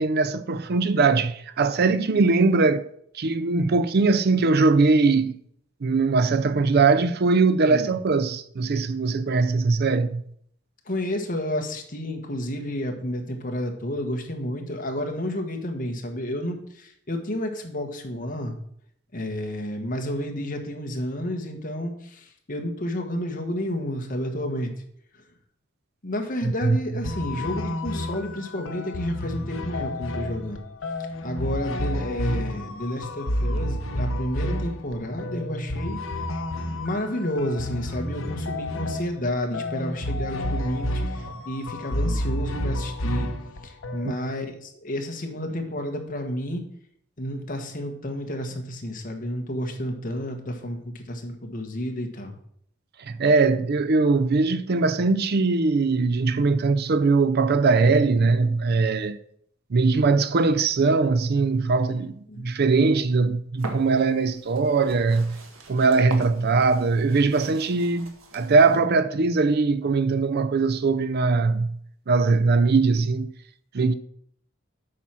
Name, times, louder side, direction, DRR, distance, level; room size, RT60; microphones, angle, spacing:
voice 1, 0.0-2.8 3.1-5.4 5.8-10.2 26.4-26.8 44.0-44.1 53.0-59.2 59.7-65.4 65.7-71.8 72.1-73.3 73.7-73.9, right 4 dB, 50° right, 0.5 m, -21 dB
voice 2, 10.8-18.6 19.1-24.7 26.0-30.6 31.2-36.0 36.7-43.3 43.6-46.6 47.2-52.4 62.3-62.5, left 1 dB, 40° left, 1.5 m, -31 dB
sound 1, 27.0-44.3, left 1 dB, 70° left, 0.9 m, -30 dB
sound 2, 63.6-68.8, right 2 dB, 80° right, 1.6 m, -42 dB
8.2 x 5.9 x 6.1 m
head